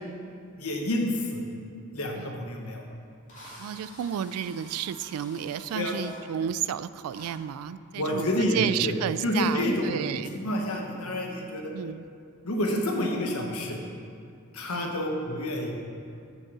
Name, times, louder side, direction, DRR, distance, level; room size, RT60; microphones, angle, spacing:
voice 1, 0.6-1.4 1.9-2.9 5.7-5.9 8.0-8.9 9.2-11.6 12.4-13.8 14.5-15.7, left 1 dB, 80° left, 1 dB, 1.2 m, -29 dB
Drill, 2.6-2.7 3.3-6.2 7.1-7.3, equal, 35° left, 2.2 m, -48 dB
voice 2, 3.6-10.4 11.7-12.1 14.7-15.0, right 9 dB, 90° right, 16 dB, 0.3 m, -32 dB
8.3 x 5.3 x 6.1 m, 2.4 s
head